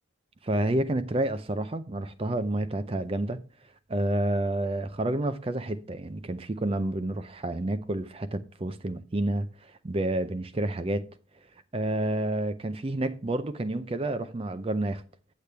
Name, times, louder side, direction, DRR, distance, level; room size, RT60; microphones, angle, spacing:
voice 1, 0.4-3.4 3.9-11.1 11.7-15.0, right 1 dB, 25° right, 0.5 m, -29 dB
8.4 x 8.1 x 3.3 m
head